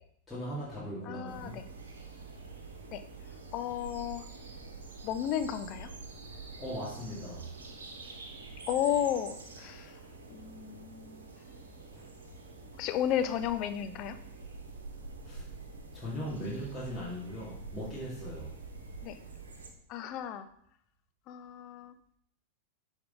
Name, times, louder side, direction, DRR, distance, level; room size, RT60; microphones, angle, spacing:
voice 1, 0.3-1.6 6.6-7.5 12.0-12.1 15.2-15.5 15.9-18.5, equal, 5° left, -10 dB, 2.1 m, -39 dB
voice 2, 1.1-1.6 2.9-3.0 3.5-4.2 5.0-5.9 8.7-9.9 10.3-11.3 12.8-14.2 19.0-19.2 19.9-20.5 21.3-21.9, left 10 dB, 40° left, 10 dB, 0.6 m, -33 dB
sound 1, 1.3-19.7, right 3 dB, 70° right, 1.1 m, -47 dB
10.0 x 3.6 x 3.8 m, 0.67 s
figure-of-eight pair, 90°, 0 cm